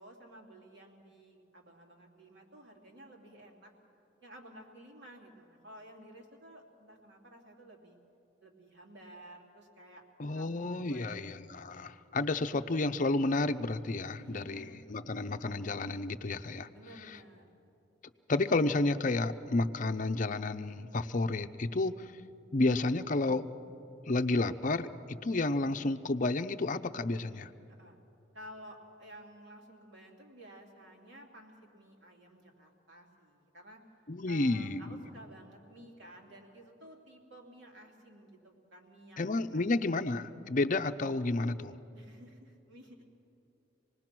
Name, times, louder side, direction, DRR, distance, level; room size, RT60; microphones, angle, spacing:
voice 1, 0.0-3.7 4.2-8.0 8.4-11.3 11.5-11.6 14.1-14.8 16.7-17.5 27.7-28.0 28.3-33.8 34.3-39.8 41.9-43.0, right 1 dB, 70° right, 0 dB, 3.1 m, -53 dB
voice 2, 10.2-16.7 18.3-22.1 22.5-23.4 24.1-27.5 34.1-35.0 39.2-41.8, left 2 dB, 45° left, 9 dB, 0.6 m, -31 dB
27.0 x 19.5 x 6.1 m, 2.7 s
head